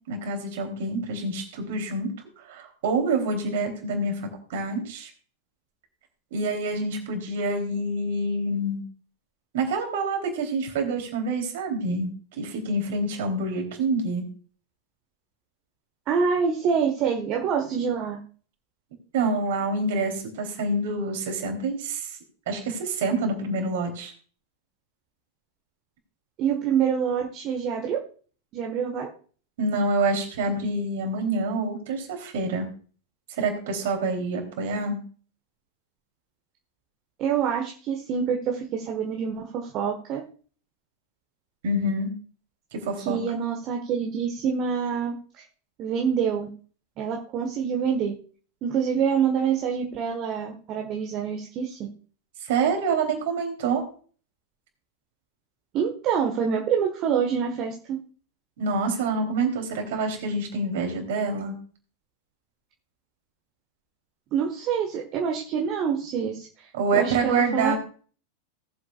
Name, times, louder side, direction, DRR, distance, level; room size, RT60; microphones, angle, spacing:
voice 1, 0.1-2.1 2.5-4.1 4.5-5.1 6.3-8.8 9.5-12.1 12.4-14.2 19.1-22.2 22.5-24.1 29.6-32.7 33.4-35.0 41.6-42.1 42.7-43.2 52.4-53.8 58.6-61.6 66.7-67.7, right 3 dB, 55° right, 3 dB, 3.4 m, -27 dB
voice 2, 16.1-18.2 26.4-28.0 28.5-29.1 37.2-40.2 43.0-45.4 45.8-46.5 47.0-48.1 48.6-51.9 55.7-58.0 64.3-66.5 66.9-67.7, right 7 dB, 35° right, 2 dB, 1.4 m, -26 dB
19.0 x 7.7 x 2.4 m, 0.42 s
figure-of-eight pair, 90°, 0 cm